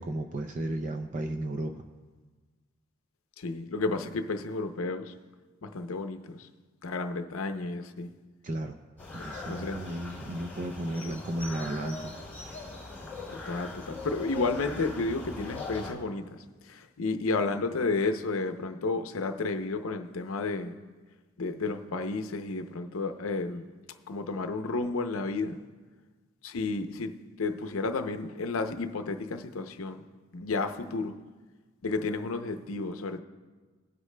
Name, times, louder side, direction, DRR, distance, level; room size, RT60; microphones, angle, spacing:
voice 1, 0.0-1.8 8.4-8.8 9.1-12.1, right 1 dB, 35° right, 5 dB, 0.4 m, -34 dB
voice 2, 3.4-5.1 5.6-6.5 6.8-8.1 9.5-9.8 13.3-20.7 21.4-23.6 24.1-25.6 26.4-30.1 30.3-31.2 31.8-33.2, left 3 dB, 75° left, 7 dB, 0.6 m, -32 dB
sound 1, 9.0-15.9, left 2 dB, 10° left, 3.1 m, -41 dB
20.5 x 8.1 x 2.2 m, 1.4 s
head